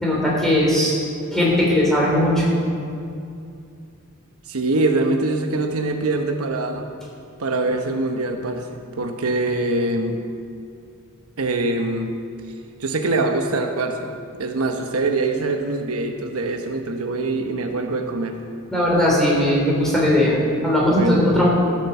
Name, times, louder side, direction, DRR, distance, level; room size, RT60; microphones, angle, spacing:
voice 1, 0.0-0.9 1.3-2.6 18.7-21.5, left 1 dB, ahead, -5 dB, 3.4 m, -18 dB
voice 2, 4.5-6.9 7.4-10.2 11.4-12.1 12.8-14.1 14.4-18.4 20.9-21.3, right 2 dB, 80° right, 4 dB, 1.0 m, -23 dB
14.0 x 7.6 x 7.1 m, 2.4 s
head